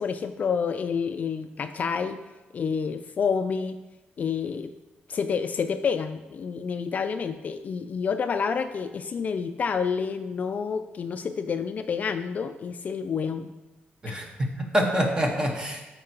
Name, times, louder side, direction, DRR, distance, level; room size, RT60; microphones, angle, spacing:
voice 1, 0.0-2.2 2.5-3.8 4.2-4.7 5.1-13.5 14.1-14.2, left 6 dB, 45° left, 9 dB, 0.3 m, -29 dB
voice 2, 14.0-15.8, equal, 20° right, 1 dB, 1.2 m, -26 dB
12.5 x 4.6 x 2.9 m, 1.1 s
cardioid pair, 135°, 4 cm